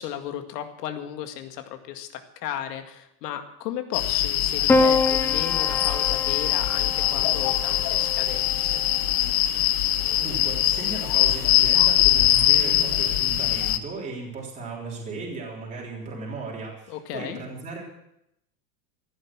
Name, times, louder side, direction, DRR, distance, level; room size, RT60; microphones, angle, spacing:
voice 1, 0.0-8.9 16.9-17.4, left 10 dB, 85° left, 6 dB, 2.2 m, -35 dB
sound 1, 3.9-13.8, left 13 dB, 55° left, 1.1 m, -22 dB
Piano, 4.7-9.2 10.4-11.0, left 3 dB, 5° left, 0.5 m, -27 dB
voice 2, 10.2-17.8, right 3 dB, 15° right, -3 dB, 3.6 m, -36 dB
14.5 x 11.5 x 7.4 m, 0.80 s
supercardioid pair, 175°, 46 cm